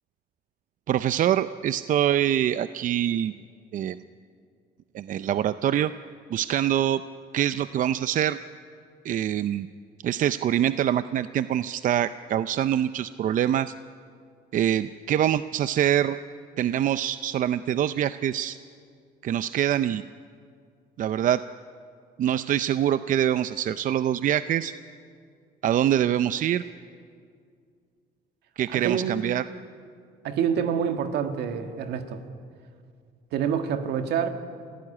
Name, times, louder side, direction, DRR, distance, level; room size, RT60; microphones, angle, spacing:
voice 1, 0.9-3.3 3.7-4.0 4.9-5.9 6.3-7.0 7.3-8.4 9.0-9.7 10.0-13.7 14.5-16.2 16.6-18.6 19.2-20.0 21.0-21.4 22.2-24.7 25.6-26.6 28.6-29.4, right 10 dB, 50° right, 13 dB, 0.6 m, -24 dB
voice 2, 28.7-29.1 30.2-32.2 33.3-34.3, right 8 dB, 75° right, 7 dB, 1.9 m, -27 dB
27.0 x 16.0 x 9.8 m, 2.2 s
cardioid pair, 110°, 17 cm